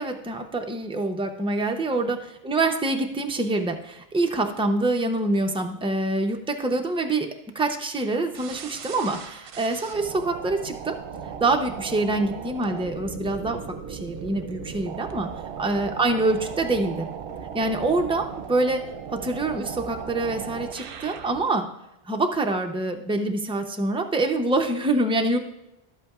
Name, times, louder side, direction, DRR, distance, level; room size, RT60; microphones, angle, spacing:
voice 1, 0.0-11.0 11.4-13.6 13.9-15.3 15.6-17.1 17.5-21.7 22.1-25.4, right 2 dB, 5° right, 4 dB, 0.4 m, -25 dB
sound 1, 8.3-21.5, right 7 dB, 65° right, 0.8 m, -37 dB
11.0 x 8.3 x 2.4 m, 0.92 s
omnidirectional pair, 1.0 m